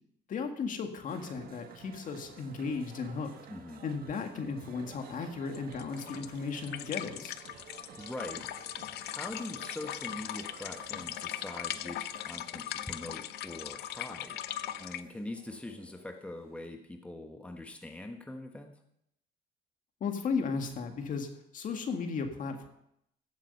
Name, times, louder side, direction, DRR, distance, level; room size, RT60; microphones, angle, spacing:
voice 1, 0.3-3.3 3.8-7.4 20.0-22.7, left 5 dB, 50° left, 5 dB, 1.9 m, -35 dB
sound 1, 1.1-16.7, right 6 dB, 60° right, 1.4 m, -53 dB
voice 2, 3.5-3.8 8.0-8.5 9.0-14.4 14.8-18.8, left 1 dB, 5° left, 4 dB, 1.2 m, -43 dB
sound 2, 5.5-15.0, left 12 dB, 75° left, 0.7 m, -39 dB
15.0 x 7.5 x 5.6 m, 0.77 s
cardioid pair, 110°, 17 cm